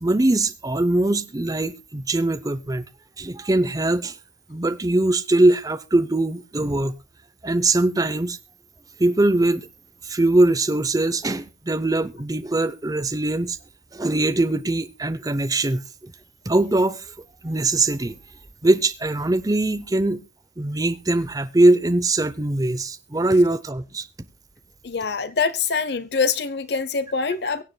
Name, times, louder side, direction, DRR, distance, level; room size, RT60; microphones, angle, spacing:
voice 1, 0.0-2.9 3.2-4.1 4.5-6.9 7.4-8.4 9.0-9.7 10.0-13.6 13.9-16.1 16.5-17.0 17.4-18.2 18.6-20.2 20.6-24.1, right 2 dB, 20° right, 0.6 m, -21 dB
voice 2, 24.8-27.6, left 5 dB, 65° left, 0.7 m, -24 dB
23.0 x 7.7 x 2.2 m
head